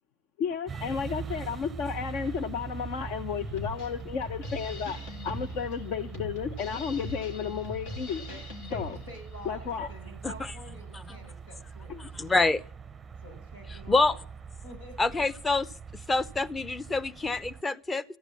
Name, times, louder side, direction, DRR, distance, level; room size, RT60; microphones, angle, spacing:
voice 1, 0.4-5.0 5.2-8.2 8.7-9.0 9.4-9.9 11.9-12.1, left 7 dB, 55° left, 1.0 m, -33 dB
sound 1, 0.7-17.6, right 6 dB, 20° right, 0.7 m, -42 dB
Drum kit, 3.4-9.4, left 2 dB, 70° left, 4.1 m, -41 dB
voice 2, 8.3-11.9 13.2-14.2 14.6-15.0, left 1 dB, 85° left, 7.0 m, -47 dB
voice 3, 12.1-12.6 13.9-14.1 15.0-15.7 16.1-18.0, left 3 dB, 15° left, 0.8 m, -26 dB
14.5 x 10.0 x 8.5 m
hypercardioid pair, 95°, 0 cm